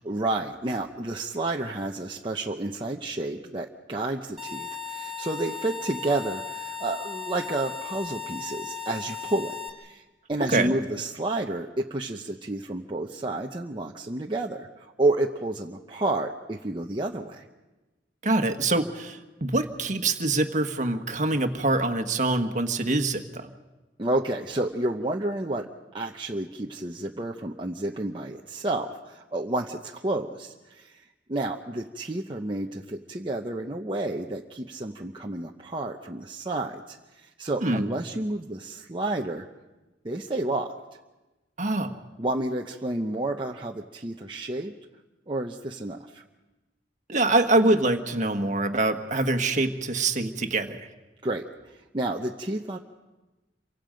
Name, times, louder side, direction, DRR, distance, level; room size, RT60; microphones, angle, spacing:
voice 1, 0.0-10.0 10.3-17.4 24.0-25.7 25.9-31.0 31.3-39.5 40.0-40.7 42.2-44.7 45.3-46.2 51.2-52.8, right 2 dB, 25° right, 0 dB, 0.9 m, -30 dB
sound 1, 4.4-9.7, left 7 dB, ahead, 3.4 m, -36 dB
voice 2, 10.4-10.7 18.2-23.5 37.6-37.9 41.6-42.0 47.1-50.9, right 2 dB, 45° right, 7 dB, 1.5 m, -25 dB
28.0 x 24.5 x 5.2 m, 1.1 s
head